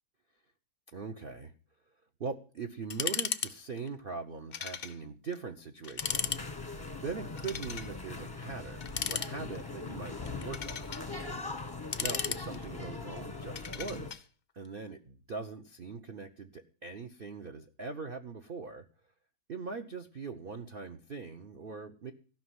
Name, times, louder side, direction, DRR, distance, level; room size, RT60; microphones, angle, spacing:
voice 1, 0.9-1.5 2.2-6.5 7.0-10.9 12.0-14.3 14.5-18.9 19.5-22.1, right 4 dB, 45° right, 5 dB, 0.7 m, -41 dB
sound 1, 2.9-3.5 3.8-3.9 4.5-5.0 5.3-5.4 5.8-6.4 7.4-7.9 8.8-9.7 10.3-11.0 11.7-12.8 13.6-14.2, left 7 dB, 70° left, 0.5 m, -35 dB
sound 2, 6.0-14.1, left 3 dB, 15° left, 0.9 m, -41 dB
16.0 x 5.9 x 9.6 m, 0.41 s
omnidirectional pair, 2.1 m